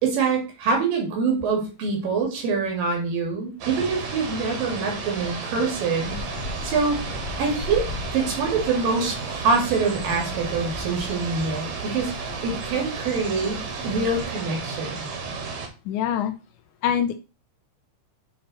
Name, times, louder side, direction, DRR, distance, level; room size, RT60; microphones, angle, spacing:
voice 1, 0.0-6.2 6.6-7.0 7.4-7.9 8.1-15.1, right 4 dB, 85° right, 1 dB, 3.8 m, -25 dB
sound 1, 3.6-15.7, right 4 dB, 60° right, 2.4 m, -33 dB
sound 2, 6.1-14.2, left 3 dB, 55° left, 2.3 m, -39 dB
voice 2, 15.9-16.3 16.8-17.2, left 9 dB, 80° left, 9 dB, 1.9 m, -24 dB
8.7 x 3.8 x 4.0 m, 0.31 s
omnidirectional pair, 3.9 m